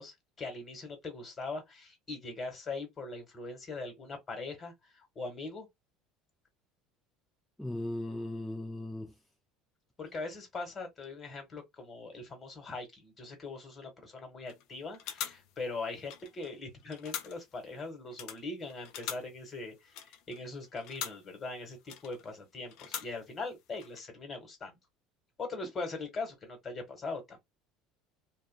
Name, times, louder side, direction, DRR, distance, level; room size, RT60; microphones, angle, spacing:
voice 1, 0.0-5.7 10.0-24.8 25.4-27.4, left 3 dB, 35° left, 1.5 m, -41 dB
voice 2, 7.6-9.1, left 1 dB, 5° left, 0.5 m, -37 dB
sound 1, 14.5-14.7 14.9-16.6 16.8-17.6 18.1-21.4 21.8-22.4 22.7-23.5 23.7-24.0, left 9 dB, 65° left, 0.5 m, -43 dB
2.4 x 2.4 x 2.3 m
supercardioid pair, 90°, 0 cm